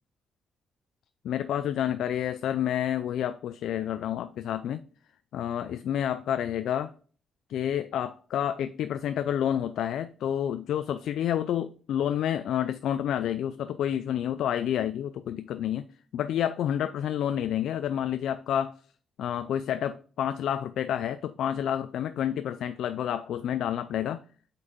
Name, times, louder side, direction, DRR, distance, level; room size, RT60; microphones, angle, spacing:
voice 1, 1.2-4.8 5.3-6.9 7.5-15.8 16.1-18.7 19.2-24.2, left 10 dB, 80° left, 0.3 m, -29 dB
5.2 x 4.8 x 4.2 m
cardioid pair, 80°, 0 cm